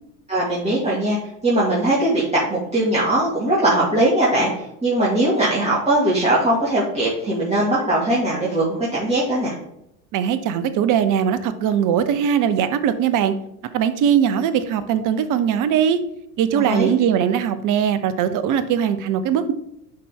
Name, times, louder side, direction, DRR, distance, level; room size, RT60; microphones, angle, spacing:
voice 1, 0.3-1.2 1.4-9.5 16.5-16.9, right 1 dB, 15° right, -7 dB, 2.5 m, -20 dB
voice 2, 10.1-13.3 13.7-16.0 16.4-19.5, right 8 dB, 40° right, 12 dB, 0.9 m, -20 dB
10.5 x 4.3 x 3.8 m, 0.79 s
hypercardioid pair, 80°, 48 cm